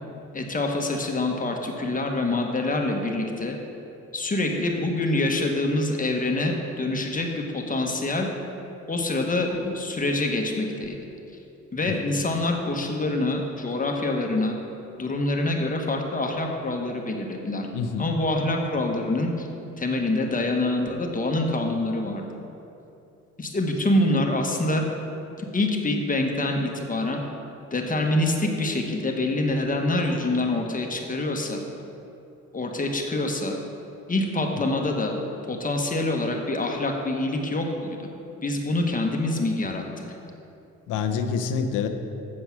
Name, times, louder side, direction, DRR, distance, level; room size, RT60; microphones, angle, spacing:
voice 1, 0.3-3.6 4.1-8.3 8.9-11.0 11.7-14.6 15.0-17.7 18.0-19.5 19.8-22.2 23.4-24.8 25.5-27.2 27.7-31.6 32.5-33.5 34.1-35.1 35.5-38.0 38.4-39.8, left 2 dB, 25° left, 2 dB, 1.3 m, -25 dB
voice 2, 17.7-18.1 34.5-34.6 40.9-41.9, left 6 dB, 85° left, 7 dB, 0.8 m, -27 dB
8.0 x 7.5 x 6.0 m, 2.8 s
cardioid pair, 90°, 30 cm